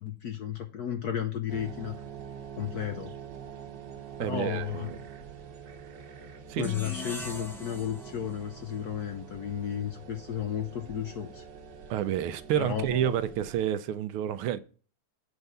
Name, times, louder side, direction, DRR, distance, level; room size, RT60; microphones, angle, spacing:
voice 1, 0.0-1.9 2.6-3.1 4.2-4.9 6.6-11.4 12.6-13.1, left 9 dB, 65° left, 1.0 m, -33 dB
sound 1, 1.5-13.7, right 7 dB, 60° right, 1.4 m, -46 dB
voice 2, 4.2-5.0 6.5-6.7 11.9-14.6, right 10 dB, 80° right, 1.5 m, -29 dB
sound 2, 6.6-9.8, left 2 dB, ahead, 0.9 m, -42 dB
8.0 x 4.7 x 5.4 m
omnidirectional pair, 2.4 m